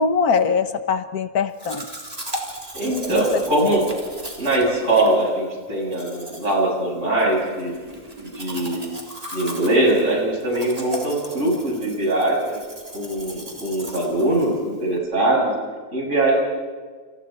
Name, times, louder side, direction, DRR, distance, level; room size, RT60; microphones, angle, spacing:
voice 1, 0.0-1.9 3.1-3.4, left 5 dB, 80° left, 9 dB, 1.7 m, -22 dB
Domestic sounds home sounds, 1.6-15.0, equal, 25° right, 4.0 m, -37 dB
voice 2, 2.7-3.9 4.4-7.7 8.2-8.9 9.3-12.6 12.9-15.5 15.9-16.4, right 1 dB, 50° right, -2 dB, 7.9 m, -21 dB
30.0 x 29.5 x 4.5 m, 1.5 s
omnidirectional pair, 1.6 m